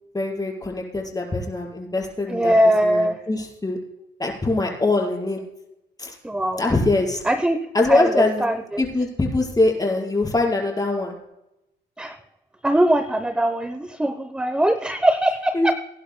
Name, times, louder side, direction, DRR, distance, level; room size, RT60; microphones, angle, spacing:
voice 1, 0.1-2.5 2.8-3.8 4.2-5.4 6.0-6.2 6.6-7.2 7.7-8.5 8.8-11.2 15.5-15.7, left 2 dB, 20° left, -1 dB, 5.0 m, -23 dB
voice 2, 2.3-3.2 6.2-6.6 7.3-7.6 7.9-8.8 12.0-12.2 12.6-15.7, right 1 dB, 5° right, 9 dB, 0.8 m, -21 dB
23.5 x 11.0 x 2.2 m, 0.89 s
cardioid pair, 90°, 20 cm